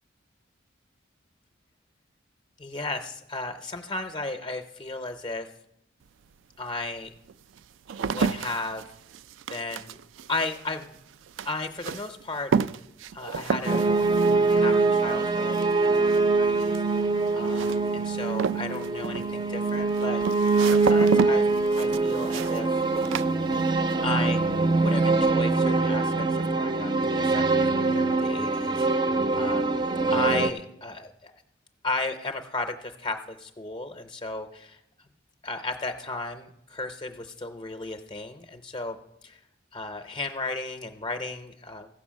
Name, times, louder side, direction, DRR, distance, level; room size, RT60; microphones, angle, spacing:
voice 1, 2.6-5.5 6.6-7.1 8.0-8.8 9.5-10.0 10.3-11.0 11.4-12.5 13.1-13.8 14.5-20.2 20.6-21.5 21.8-22.8 24.0-29.8 30.1-31.3 31.8-34.8 35.4-39.4 39.7-41.9, left 3 dB, 25° left, 6 dB, 0.6 m, -34 dB
sound 1, 6.1-6.2 6.8-24.0 24.3-24.9, right 6 dB, 80° right, 0.3 m, -32 dB
sound 2, 13.7-30.5, right 3 dB, 25° right, 0.5 m, -24 dB
15.0 x 5.4 x 7.3 m, 0.83 s
head